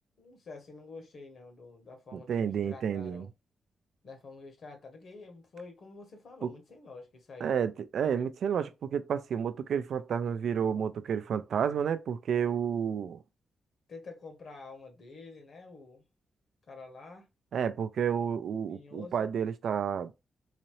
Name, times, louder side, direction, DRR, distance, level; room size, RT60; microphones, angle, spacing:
voice 1, 0.2-3.3 4.0-7.6 13.9-16.0 16.7-17.3 18.7-19.3, left 3 dB, 55° left, 1.3 m, -48 dB
voice 2, 2.1-3.3 6.4-6.5 7.4-13.2 17.5-20.1, right 7 dB, 70° right, 0.4 m, -30 dB
3.9 x 2.7 x 3.1 m
wide cardioid pair, 130°, 0 cm